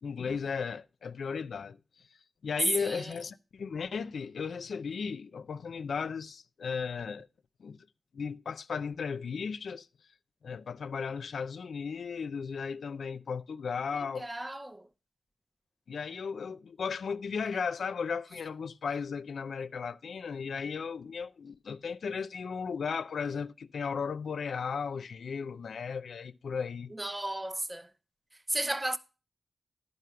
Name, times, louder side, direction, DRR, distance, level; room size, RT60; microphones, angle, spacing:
voice 1, 0.0-1.8 2.4-7.3 7.6-7.8 8.1-9.9 10.4-14.3 15.9-26.9, left 6 dB, 80° left, 0.5 m, -35 dB
voice 2, 14.2-14.8 27.0-27.9 28.5-29.0, right 1 dB, 20° right, 0.7 m, -34 dB
11.0 x 5.4 x 5.6 m
cardioid pair, 75°, 0 cm